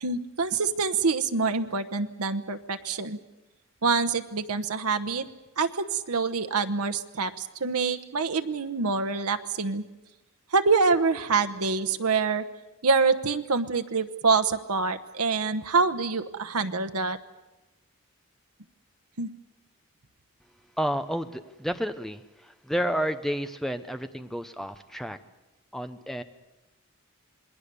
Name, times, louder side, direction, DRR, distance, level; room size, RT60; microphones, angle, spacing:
voice 1, 0.0-3.2 3.8-5.3 5.6-9.8 10.5-12.4 12.8-17.2 19.2-19.3, right 4 dB, 85° right, 8 dB, 1.0 m, -26 dB
voice 2, 20.8-25.2 25.7-26.2, equal, ahead, 9 dB, 0.8 m, -31 dB
27.5 x 20.5 x 6.9 m, 1.0 s
head